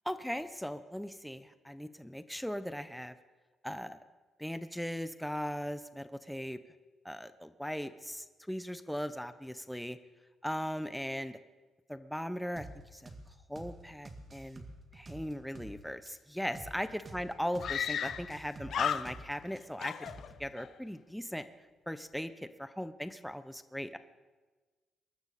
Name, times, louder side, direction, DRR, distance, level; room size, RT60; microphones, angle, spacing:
voice 1, 0.0-3.1 3.6-4.0 4.4-6.6 7.0-10.0 10.4-11.4 11.9-13.1 13.5-14.6 14.9-19.9 20.4-21.5 21.9-24.0, equal, ahead, 11 dB, 0.8 m, -38 dB
sound 1, 12.6-12.7 13.1-13.2 13.6-13.7 14.0-15.7 16.1-16.2 16.5-16.7 17.0-17.2 17.5-17.7 18.1-19.6 20.1-20.5, right 2 dB, 30° right, 2.0 m, -48 dB
Screaming, 16.8-16.9 17.6-18.4 18.7-19.5 19.8-20.7, left 8 dB, 65° left, 0.5 m, -35 dB
22.5 x 12.5 x 4.2 m, 1.3 s
cardioid pair, 90°, 0 cm